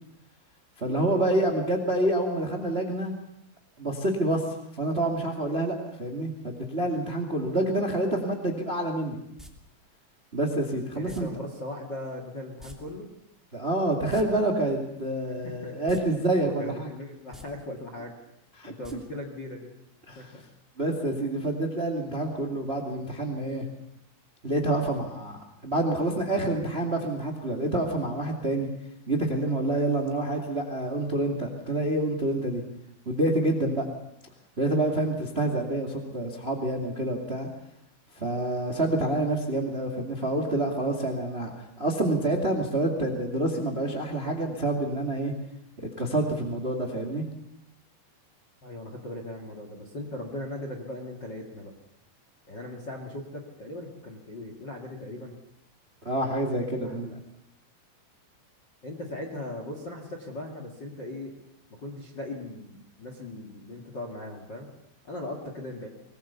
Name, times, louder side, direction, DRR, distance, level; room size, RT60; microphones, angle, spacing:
voice 1, 0.8-3.1 3.8-9.2 10.3-11.3 13.5-16.9 18.6-18.7 20.1-20.3 20.8-23.6 24.4-28.7 29.1-32.6 33.0-33.9 34.6-37.5 38.1-41.5 41.8-45.3 46.0-47.2 56.0-57.2, right 1 dB, 60° right, 2 dB, 0.6 m, -27 dB
sound 1, 9.4-9.5 11.1-11.2 12.6-12.8 13.0-13.1 13.9-14.2 15.8-16.0 16.4-16.5 17.2-17.4 18.8-18.9 19.3-19.4, equal, ahead, 1.1 m, -46 dB
voice 2, 10.9-13.1 15.4-16.0 16.4-18.2 18.7-19.7 20.1-20.4 48.6-51.7 52.5-55.4 56.8-57.0 58.8-61.3 61.8-64.7 65.0-65.9, left 1 dB, 45° left, 3 dB, 1.4 m, -38 dB
23.5 x 20.0 x 7.0 m, 0.81 s
omnidirectional pair, 5.7 m